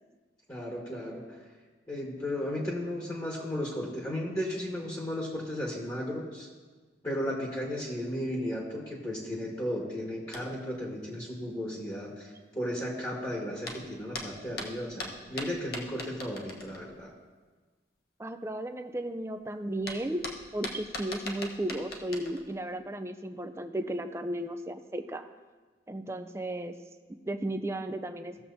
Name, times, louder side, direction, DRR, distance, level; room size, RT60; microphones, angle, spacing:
voice 1, 0.5-1.4 1.9-6.5 7.0-17.1, left 1 dB, 20° left, -3 dB, 1.4 m, -35 dB
sound 1, 10.3-10.7 13.6-17.1 19.4-19.5 19.7-22.6, left 2 dB, 55° left, 1.2 m, -40 dB
voice 2, 18.2-20.2 20.5-25.3 25.9-26.8 27.3-28.4, right 1 dB, 15° right, 8 dB, 0.4 m, -34 dB
17.5 x 7.1 x 2.7 m, 1.4 s
head